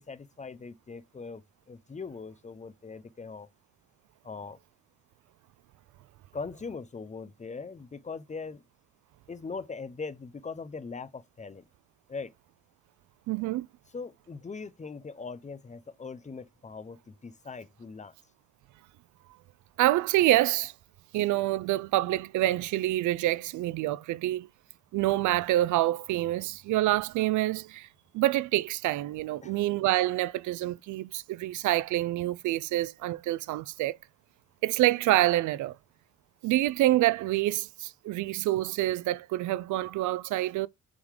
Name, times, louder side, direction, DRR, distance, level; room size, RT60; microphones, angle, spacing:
voice 1, 0.0-3.5 4.2-4.6 6.3-8.6 9.3-11.6 12.1-12.3 13.9-18.1 29.4-29.6, left 4 dB, 25° left, 0.7 m, -41 dB
voice 2, 13.3-13.7 19.8-20.7 21.1-24.5 24.9-27.9 28.1-34.0 34.6-35.8 36.4-40.7, right 15 dB, 75° right, 0.4 m, -27 dB
6.8 x 3.9 x 4.9 m
cardioid pair, 90°, 30 cm